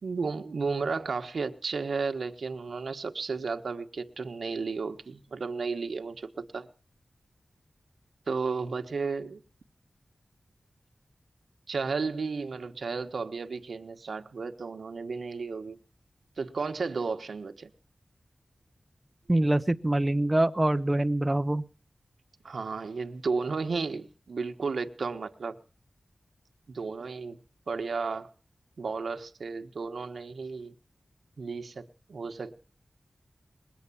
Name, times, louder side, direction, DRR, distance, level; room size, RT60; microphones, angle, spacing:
voice 1, 0.0-6.7 8.3-9.4 11.7-15.8 16.4-17.7 22.4-25.6 26.7-27.4 27.7-28.3 28.8-30.7 31.4-32.5, right 4 dB, 85° right, 1.3 m, -33 dB
voice 2, 19.3-21.6, right 1 dB, 20° right, 0.7 m, -25 dB
21.0 x 8.1 x 8.5 m
wide cardioid pair, 90°, 0 cm